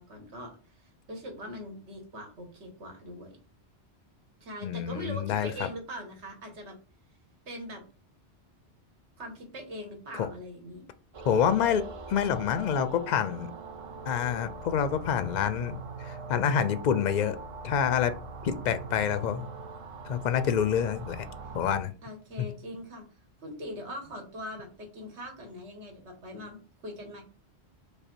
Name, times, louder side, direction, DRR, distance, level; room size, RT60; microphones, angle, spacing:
voice 1, 0.0-3.4 4.4-6.8 7.5-7.8 9.2-10.8 21.4-21.5 22.0-23.1 23.4-27.2, equal, 80° right, 2 dB, 1.6 m, -42 dB
voice 2, 4.6-5.7 10.2-10.3 11.2-13.5 14.1-17.4 17.6-18.1 18.4-19.5 20.0-21.3 21.5-21.9 22.4-22.5, left 8 dB, 60° left, 12 dB, 0.5 m, -27 dB
sound 1, 11.1-21.8, right 4 dB, 45° right, 0.4 m, -42 dB
5.1 x 2.2 x 4.4 m, 0.37 s
omnidirectional pair, 1.1 m